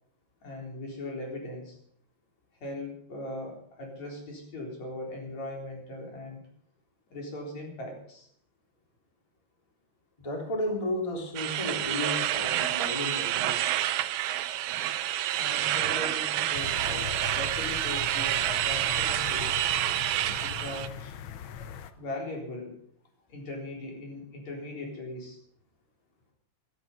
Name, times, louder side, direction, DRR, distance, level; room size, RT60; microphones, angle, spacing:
voice 1, 0.4-1.8 2.6-6.4 7.1-8.3 15.4-19.5 20.4-21.1 22.0-22.7 23.3-25.4, left 1 dB, 65° left, 0 dB, 5.3 m, -39 dB
voice 2, 10.2-13.7 15.0-15.1 18.4-18.6 20.5-20.6 21.4-21.9, left 1 dB, 10° left, 1 dB, 3.1 m, -34 dB
sound 1, 11.4-20.9, right 13 dB, 85° right, 2.2 m, -28 dB
sound 2, 16.5-21.9, left 8 dB, 85° left, 1.1 m, -40 dB
16.5 x 13.0 x 5.5 m, 0.63 s
omnidirectional pair, 3.4 m